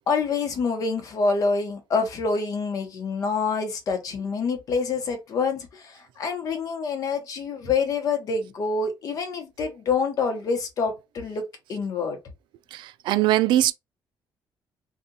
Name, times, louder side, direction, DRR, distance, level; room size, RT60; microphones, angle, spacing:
voice 1, 0.1-11.4 11.7-12.2, left 4 dB, 50° left, 1.0 m, -26 dB
voice 2, 12.7-13.7, right 14 dB, 85° right, 0.3 m, -21 dB
2.8 x 2.4 x 3.9 m
cardioid pair, 155°, 8 cm